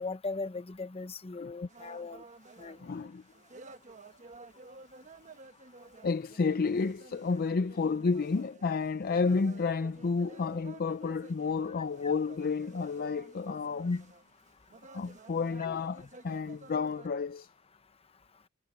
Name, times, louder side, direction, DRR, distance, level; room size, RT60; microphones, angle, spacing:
voice 1, 0.0-2.2 2.6-2.8, left 3 dB, 25° left, 0.8 m, -38 dB
sound 1, 1.7-17.1, right 3 dB, 35° right, 1.1 m, -53 dB
voice 2, 2.8-3.2 6.0-14.1 14.9-17.5, left 4 dB, 40° left, 0.4 m, -31 dB
head